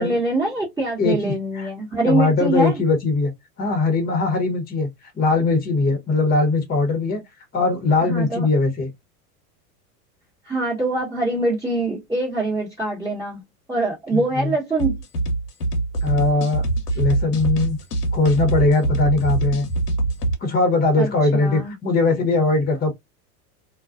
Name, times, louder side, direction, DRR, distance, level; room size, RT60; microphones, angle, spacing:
voice 1, 0.0-2.7 8.0-8.5 10.4-13.4 13.7-15.0 21.0-21.1 21.4-21.7, right 2 dB, 10° right, 1.1 m, -24 dB
voice 2, 1.0-1.7 2.0-3.3 3.6-4.9 5.1-7.2 7.5-8.9 14.1-14.5 16.0-16.6 16.9-17.8 18.1-19.6 20.4-22.9, left 3 dB, 20° left, 0.9 m, -20 dB
sound 1, 14.8-20.3, right 2 dB, 90° left, 0.9 m, -23 dB
2.4 x 2.2 x 2.4 m
hypercardioid pair, 100°, 46 cm